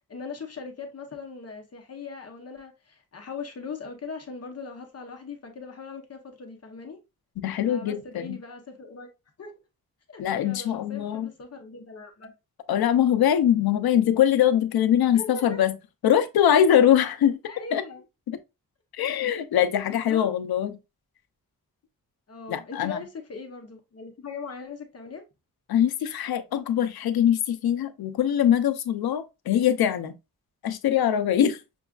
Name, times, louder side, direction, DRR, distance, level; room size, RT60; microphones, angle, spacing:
voice 1, 0.1-7.0 7.7-9.1 9.4-9.5 10.1-12.3 15.1-15.6 17.5-18.0 19.0-19.1 19.9-20.3 22.3-25.2, left 5 dB, 45° left, 0.7 m, -40 dB
voice 2, 7.4-8.4 10.2-11.3 12.7-15.7 16.0-17.4 17.7-17.8 18.3-18.4 18.9-20.8 22.5-23.0 25.7-30.1 30.6-31.6, left 10 dB, 85° left, 0.6 m, -22 dB
6.0 x 2.3 x 2.3 m
wide cardioid pair, 130°, 36 cm